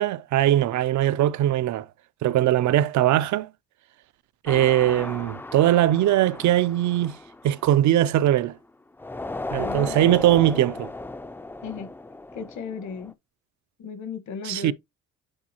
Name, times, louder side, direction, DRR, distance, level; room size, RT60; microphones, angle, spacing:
voice 1, 0.0-1.9 2.2-3.5 4.4-7.2 7.4-8.6 9.5-10.9 14.5-14.7, right 13 dB, 70° right, 0.5 m, -21 dB
sound 1, 4.5-8.5 9.0-13.1, left 2 dB, 5° left, 0.3 m, -36 dB
voice 2, 9.6-10.1 11.6-11.9 12.3-13.1 13.8-14.7, left 6 dB, 70° left, 1.5 m, -35 dB
8.8 x 4.0 x 2.9 m
cardioid pair, 115°, 30 cm